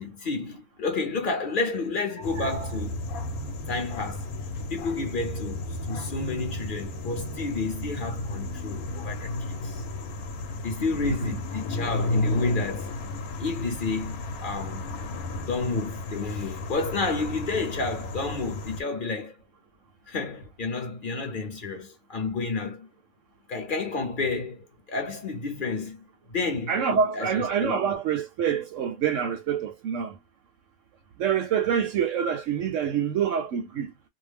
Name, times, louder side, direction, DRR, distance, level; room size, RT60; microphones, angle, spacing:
voice 1, 0.0-3.1 3.7-4.3 4.7-9.8 10.6-12.9 13.4-14.9 15.4-19.4 20.1-22.9 23.5-26.8 27.1-27.8, left 3 dB, 45° left, 0.7 m, -31 dB
sound 1, 2.2-18.8, left 2 dB, 70° left, 1.1 m, -33 dB
voice 2, 2.2-2.7 11.0-11.3 26.7-30.2 31.2-33.9, right 7 dB, 65° right, 0.8 m, -26 dB
2.6 x 2.1 x 3.3 m
omnidirectional pair, 1.7 m